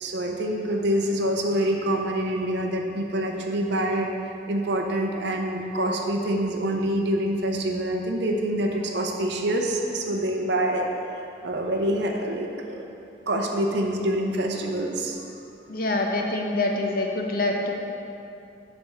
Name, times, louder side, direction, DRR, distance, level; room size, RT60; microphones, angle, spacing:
voice 1, 0.0-4.1 4.5-12.8 13.2-15.3, right 1 dB, 60° right, 1 dB, 0.5 m, -26 dB
voice 2, 15.7-17.7, left 2 dB, 50° left, 1 dB, 0.6 m, -25 dB
7.2 x 3.4 x 5.6 m, 2.7 s
head